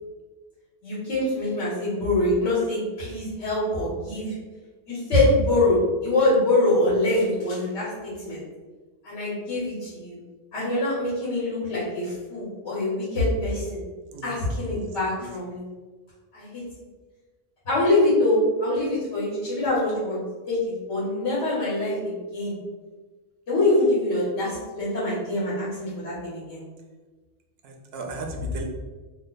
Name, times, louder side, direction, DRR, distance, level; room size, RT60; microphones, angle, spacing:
voice 1, 0.8-4.3 4.9-8.4 9.0-10.2 10.5-13.8 14.2-15.6 16.3-16.6 17.6-20.2 20.5-22.6 23.5-26.6, left 2 dB, 70° left, -9 dB, 1.3 m, -24 dB
voice 2, 14.1-14.8 15.2-15.3 27.6-28.6, right 3 dB, 65° right, 2 dB, 0.7 m, -37 dB
2.7 x 2.1 x 3.7 m, 1.3 s
omnidirectional pair, 1.2 m